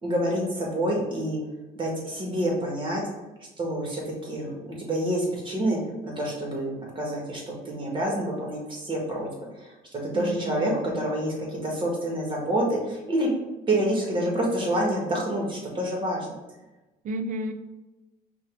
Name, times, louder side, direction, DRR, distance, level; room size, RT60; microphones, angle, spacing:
voice 1, 0.0-1.4 1.7-3.0 3.6-4.5 4.8-9.3 9.6-13.3 13.7-16.4, right 1 dB, 30° right, -2 dB, 1.6 m, -27 dB
voice 2, 10.1-10.8 17.0-17.5, right 2 dB, 50° right, 8 dB, 0.6 m, -32 dB
5.6 x 2.7 x 3.5 m, 1.1 s
cardioid pair, 110°, 17 cm